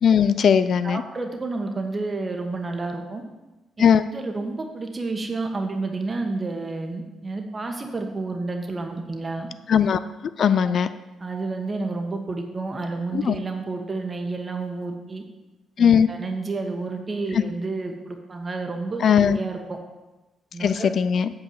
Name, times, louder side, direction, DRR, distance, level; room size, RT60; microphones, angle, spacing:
voice 1, 0.0-1.0 3.8-4.0 9.7-10.0 10.4-10.9 13.1-13.4 15.8-16.1 19.0-19.4 20.6-21.3, left 7 dB, 60° left, 13 dB, 0.4 m, -18 dB
voice 2, 0.8-3.2 3.8-3.9 4.1-9.5 10.6-10.7 11.2-15.2 15.8-19.8 20.5-20.9, right 3 dB, 30° right, 4 dB, 1.4 m, -30 dB
8.6 x 4.7 x 7.4 m, 1.1 s
cardioid pair, 90°, 0 cm